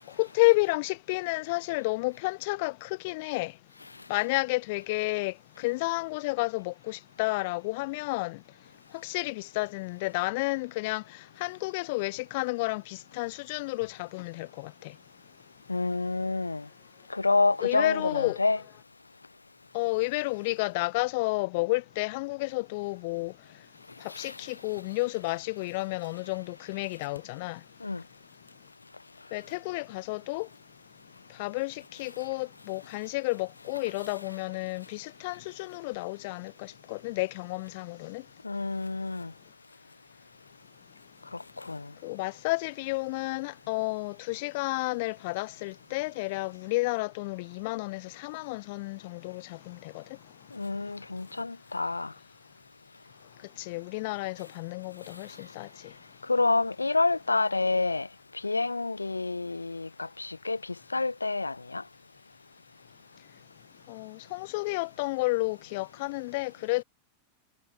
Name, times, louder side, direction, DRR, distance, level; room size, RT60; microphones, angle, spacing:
voice 1, 0.2-3.5 4.1-8.4 8.9-14.9 17.6-18.4 19.7-23.3 24.0-27.6 29.3-30.5 31.4-38.2 42.0-50.0 53.6-55.9 63.9-66.8, left 24 dB, 50° left, 0.8 m, -31 dB
voice 2, 15.7-16.7 17.1-18.6 24.1-24.4 27.8-28.0 38.4-39.3 41.3-41.9 50.5-52.1 56.3-58.1 58.4-61.8, left 3 dB, 80° left, 0.6 m, -28 dB
figure-of-eight pair, 90°, 0 cm